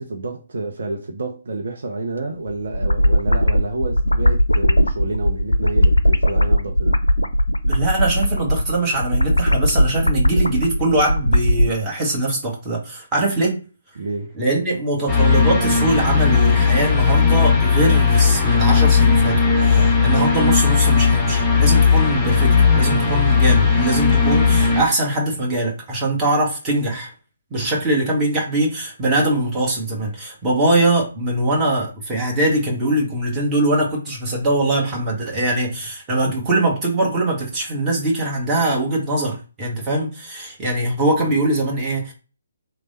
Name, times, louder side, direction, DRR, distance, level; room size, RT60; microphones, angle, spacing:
voice 1, 0.0-7.0 14.0-14.4 19.7-19.9, right 2 dB, 55° right, 0.6 m, -29 dB
sound 1, 2.5-11.7, equal, 85° left, 0.3 m, -18 dB
voice 2, 7.6-13.6 14.4-27.1 27.5-42.1, right 1 dB, 15° right, 1.1 m, -22 dB
sound 2, 15.1-24.8, left 5 dB, 10° left, 0.7 m, -16 dB
3.3 x 2.0 x 4.0 m
figure-of-eight pair, 140°, 0 cm